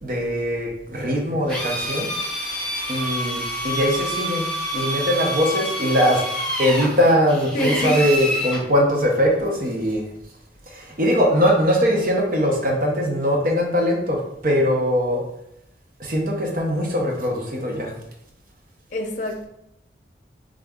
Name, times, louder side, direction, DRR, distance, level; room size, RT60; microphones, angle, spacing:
voice 1, 0.0-2.1 2.9-4.5 4.7-10.0 10.7-15.2 16.0-17.9, equal, 50° right, 0 dB, 0.8 m, -21 dB
Drill, 1.5-8.6, equal, 5° left, 1.6 m, -27 dB
voice 2, 7.5-8.0 18.9-19.4, left 1 dB, 45° left, 3 dB, 0.7 m, -25 dB
3.9 x 3.6 x 3.6 m, 0.81 s
head